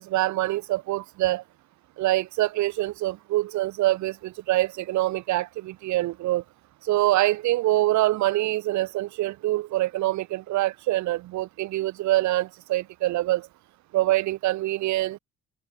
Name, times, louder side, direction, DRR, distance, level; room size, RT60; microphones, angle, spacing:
voice 1, 0.0-1.4 2.0-6.4 6.9-13.5 13.9-15.2, right 16 dB, 70° right, 0.5 m, -25 dB
cardioid pair, 90°, 30 cm